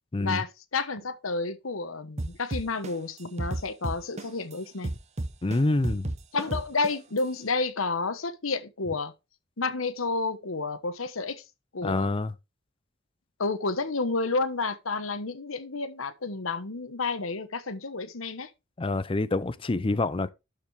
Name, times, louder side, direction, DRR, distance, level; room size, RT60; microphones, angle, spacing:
voice 1, 0.2-4.9 6.3-9.1 9.6-11.4 11.7-12.1 13.4-18.5, left 3 dB, 85° left, 1.1 m, -30 dB
sound 1, 2.2-4.5 4.8-7.2, right 1 dB, 35° right, 0.8 m, -32 dB
voice 2, 5.4-6.1 11.8-12.3 18.8-20.3, left 2 dB, 25° left, 0.5 m, -26 dB
12.0 x 5.2 x 3.6 m
head